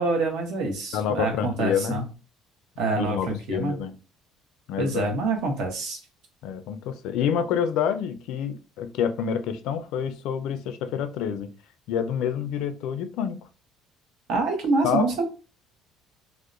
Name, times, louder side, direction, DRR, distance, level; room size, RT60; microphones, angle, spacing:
voice 1, 0.0-2.0 2.8-3.8 4.8-6.0 14.3-15.3, right 3 dB, 65° right, 3 dB, 0.8 m, -26 dB
voice 2, 0.9-2.0 2.9-3.9 4.7-5.1 6.4-11.5 11.9-13.4 14.8-15.1, left 8 dB, 70° left, 10 dB, 0.3 m, -27 dB
2.7 x 2.0 x 2.4 m, 0.33 s
cardioid pair, 145°, 0 cm